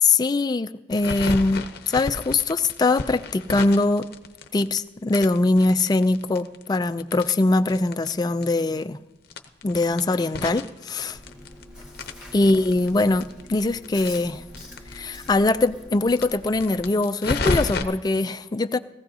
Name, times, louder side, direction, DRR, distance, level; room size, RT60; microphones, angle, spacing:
voice 1, 0.0-4.1 4.5-9.0 9.6-11.2 12.3-14.4 14.9-18.8, left 2 dB, 20° left, 10 dB, 0.3 m, -22 dB
sound 1, 0.9-4.8 5.1-8.1 8.4-8.5 8.8-8.9 9.3-11.6 11.9-15.0 15.3-15.4 15.6-15.7 16.1-17.8, left 3 dB, 55° left, 0.7 m, -32 dB
Chewing mastication, 11.1-16.9, left 1 dB, 5° right, 1.8 m, -44 dB
18.5 x 14.5 x 2.8 m, 1.0 s
head